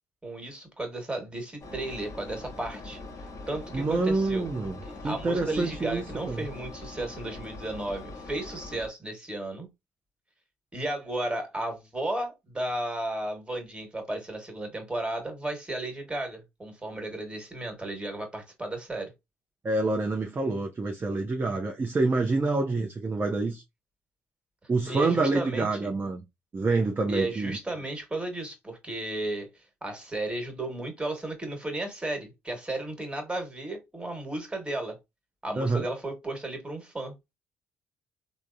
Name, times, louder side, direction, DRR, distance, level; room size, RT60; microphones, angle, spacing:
voice 1, 0.2-3.0 3.5-4.5 4.8-9.7 10.7-19.1 24.9-25.9 27.1-35.0 35.4-37.3, right 1 dB, 15° right, 1.4 m, -34 dB
Engine, 1.6-8.9, left 2 dB, 50° left, 0.6 m, -42 dB
voice 2, 3.7-6.5 19.6-23.6 24.7-26.2 26.5-27.6 35.6-35.9, right 3 dB, 30° right, 0.5 m, -27 dB
3.3 x 2.0 x 2.5 m
hypercardioid pair, 50°, 7 cm